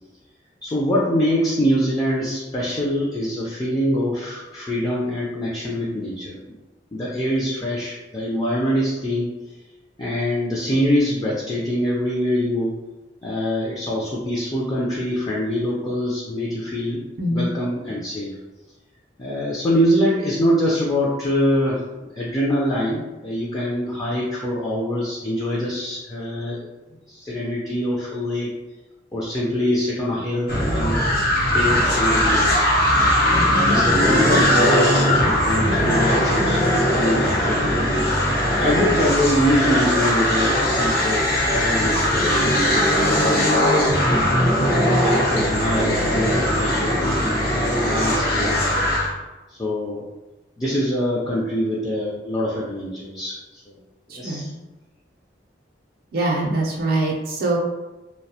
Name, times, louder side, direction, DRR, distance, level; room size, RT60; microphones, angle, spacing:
voice 1, 0.6-6.4 6.9-9.3 10.0-12.7 13.2-17.0 17.3-18.4 19.2-26.7 27.1-28.5 29.1-31.0 31.5-32.6 33.7-38.1 38.6-43.7 44.8-48.7 49.5-50.0 50.6-53.6 54.1-54.5, equal, 20° left, -5 dB, 0.3 m, -24 dB
voice 2, 17.2-17.5 54.1-54.5 56.1-57.6, right 2 dB, 55° right, -2 dB, 0.4 m, -23 dB
sound 1, 30.5-49.1, equal, 55° left, 0.6 m, -19 dB
2.3 x 2.1 x 2.7 m, 1.1 s
head